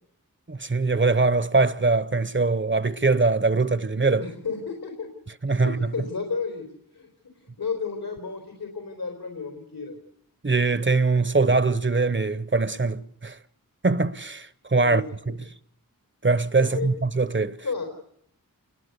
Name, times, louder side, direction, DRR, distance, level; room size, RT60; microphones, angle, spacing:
voice 1, 0.5-4.3 5.4-5.8 10.4-13.4 13.8-15.3 16.2-17.6, right 3 dB, 35° right, 1.0 m, -22 dB
voice 2, 4.2-5.1 5.5-6.7 6.9-7.1 7.6-10.0 14.8-15.4 16.6-16.9 17.6-17.8, left 5 dB, 75° left, 4.2 m, -32 dB
27.5 x 22.0 x 8.3 m
wide cardioid pair, 55°, 35 cm